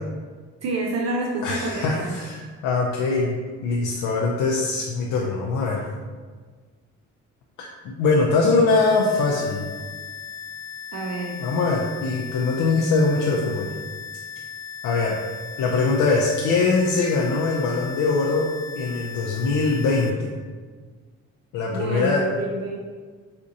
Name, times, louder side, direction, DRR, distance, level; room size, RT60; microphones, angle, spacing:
voice 1, 0.6-2.2 10.9-11.4 21.7-22.8, right 2 dB, 60° right, 0 dB, 0.5 m, -28 dB
voice 2, 1.4-5.9 7.6-9.7 11.4-13.7 14.8-15.2 15.6-18.5 18.8-20.4 21.5-22.2, left 3 dB, 85° left, -2 dB, 0.5 m, -22 dB
sound 1, 8.7-20.1, left 6 dB, 30° left, 0.3 m, -37 dB
4.2 x 2.5 x 2.6 m, 1.5 s
cardioid pair, 90°, 30 cm